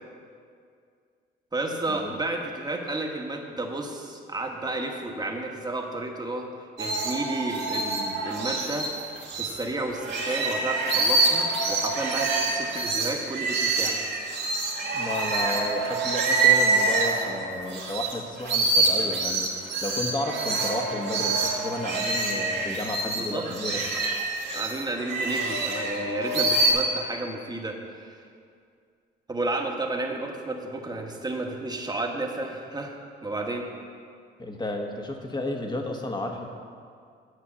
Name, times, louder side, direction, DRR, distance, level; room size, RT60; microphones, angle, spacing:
voice 1, 1.5-6.5 6.8-8.9 9.4-14.0 23.0-23.5 23.9-24.0 24.5-28.2 29.3-33.7, right 2 dB, 20° right, 2 dB, 1.4 m, -32 dB
sound 1, 6.8-9.6 10.0-18.1 18.4-26.7, right 3 dB, 60° right, 2.4 m, -26 dB
voice 2, 14.9-23.9 34.4-36.5, left 1 dB, 20° left, 3 dB, 1.4 m, -32 dB
9.9 x 6.2 x 7.1 m, 2.2 s
cardioid pair, 90°, 20 cm